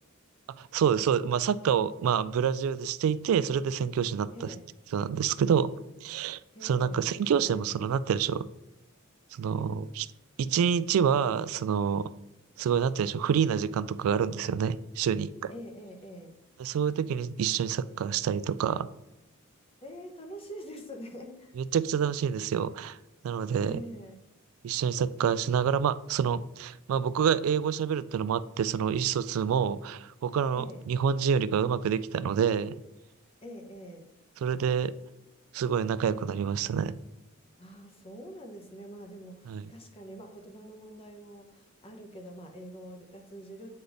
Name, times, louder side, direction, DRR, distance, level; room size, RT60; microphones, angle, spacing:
voice 1, 0.6-4.3 4.9-5.7 6.0-8.5 9.3-10.1 10.4-12.1 12.6-15.5 16.6-18.9 21.7-23.0 23.2-23.8 24.6-32.8 34.4-34.9 35.5-36.9 39.5-39.6, right 7 dB, 80° right, 16 dB, 0.3 m, -27 dB
voice 2, 4.3-4.6 6.5-7.9 15.5-16.4 19.8-21.5 23.6-24.2 30.5-30.9 33.4-34.1 37.6-43.7, equal, 30° left, 3 dB, 0.9 m, -45 dB
8.2 x 3.3 x 3.9 m, 0.93 s
head